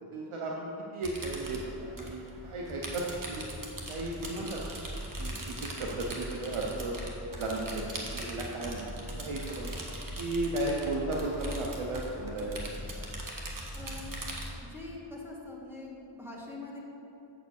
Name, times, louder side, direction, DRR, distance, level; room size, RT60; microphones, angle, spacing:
voice 1, 0.1-0.7 0.9-3.4 3.9-4.6 5.2-6.9 7.4-9.7 10.2-12.7 13.0-13.1, right 2 dB, 80° right, -2 dB, 0.9 m, -35 dB
sound 1, 1.0-14.5, right 1 dB, 40° right, 1.4 m, -40 dB
voice 2, 13.7-14.2 14.7-16.8, left 2 dB, 5° right, -4 dB, 1.7 m, -43 dB
7.9 x 4.9 x 6.4 m, 2.9 s
wide cardioid pair, 65°, 49 cm